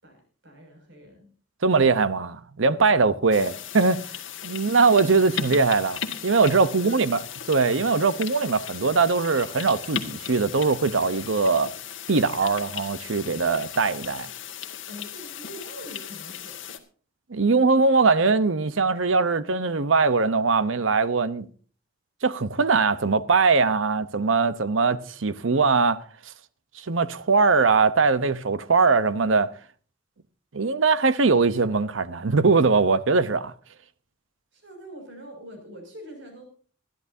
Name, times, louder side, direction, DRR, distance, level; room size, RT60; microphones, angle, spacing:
voice 1, 0.4-1.3 3.3-3.5 4.6-4.9 6.7-7.0 14.9-16.8 34.5-36.5, equal, 65° right, 6.3 m, -43 dB
voice 2, 1.6-4.0 4.4-6.0 6.2-7.2 7.5-11.7 12.1-14.3 17.3-21.5 22.2-26.0 26.8-29.5 30.5-33.5, right 4 dB, 85° right, 0.9 m, -21 dB
sound 1, 3.3-16.8, left 8 dB, 75° left, 1.7 m, -37 dB
20.5 x 13.0 x 2.7 m
head